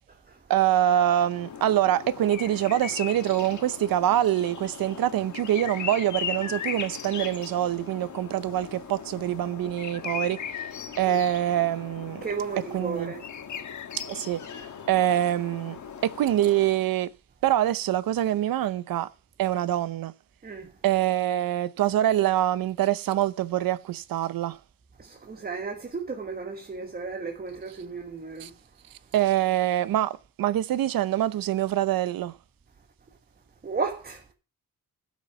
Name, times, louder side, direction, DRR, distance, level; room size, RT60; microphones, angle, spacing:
voice 1, 0.5-10.4 11.0-12.2 12.7-13.1 14.1-14.4 14.9-17.1 17.4-19.1 19.4-20.1 20.8-24.6 28.4-28.5 29.1-32.3, right 12 dB, 90° right, 0.8 m, -25 dB
sound 1, 1.0-17.0, left 7 dB, 60° left, 1.6 m, -38 dB
voice 2, 12.2-13.2 20.4-20.7 25.0-28.5 33.6-34.2, right 4 dB, 25° right, 1.4 m, -34 dB
13.0 x 6.2 x 5.7 m
wide cardioid pair, 140°, 34 cm